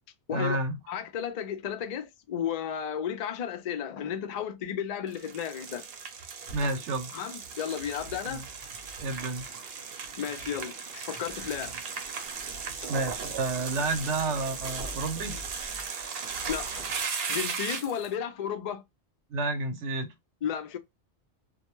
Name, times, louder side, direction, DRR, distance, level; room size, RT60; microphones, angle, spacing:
voice 1, 0.3-0.7 6.5-7.1 8.3-8.4 9.0-9.5 12.9-15.4 19.3-20.1, right 2 dB, 90° right, 1.0 m, -30 dB
voice 2, 0.9-5.8 7.1-8.4 10.2-10.7 11.0-11.7 12.8-12.9 16.5-16.9 17.3-18.8 20.4-20.8, left 8 dB, 60° left, 0.4 m, -33 dB
sound 1, 5.1-18.1, right 5 dB, 60° right, 0.8 m, -37 dB
2.3 x 2.1 x 2.9 m
omnidirectional pair, 1.2 m